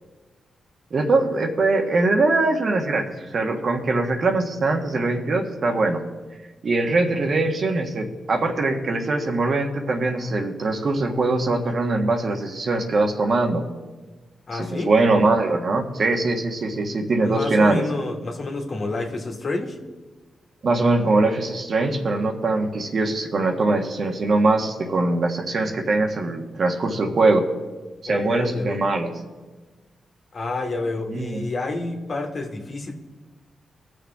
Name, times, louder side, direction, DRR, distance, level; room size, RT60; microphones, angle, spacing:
voice 1, 0.9-6.0 6.6-13.7 14.5-17.8 20.6-27.4 28.0-29.1 31.1-31.5, right 2 dB, 60° right, 3 dB, 1.5 m, -22 dB
voice 2, 14.5-14.9 17.2-19.8 28.1-28.8 30.3-32.9, left 2 dB, 55° left, 2 dB, 1.9 m, -29 dB
20.0 x 6.7 x 3.6 m, 1.3 s
supercardioid pair, 55°, 0 cm